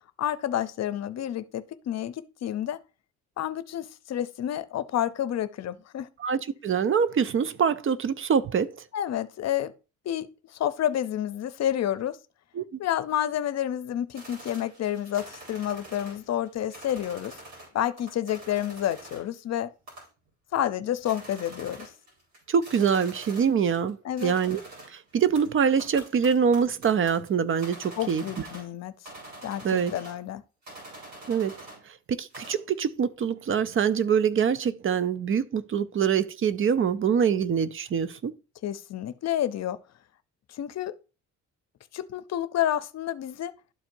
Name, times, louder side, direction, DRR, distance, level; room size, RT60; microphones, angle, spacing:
voice 1, 0.2-2.8 3.4-6.1 8.9-9.7 10.0-10.3 10.5-12.2 12.8-17.4 17.7-19.7 20.5-21.9 24.0-24.3 28.0-28.9 29.4-30.4 38.6-39.8 40.5-40.9 41.9-43.5, left 11 dB, 60° left, 0.6 m, -29 dB
voice 2, 6.2-8.7 12.6-12.8 22.5-24.6 24.9-28.5 29.6-29.9 31.3-31.6 31.9-38.3, right 7 dB, 45° right, 0.6 m, -25 dB
sound 1, 14.1-17.7 18.0-19.4 19.9-20.3 20.7-20.8 21.0-23.9 24.2-28.8 29.0-30.3 30.6-31.8 32.1-32.7, right 1 dB, 65° right, 4.2 m, -45 dB
12.0 x 4.4 x 2.6 m
cardioid pair, 90°, 30 cm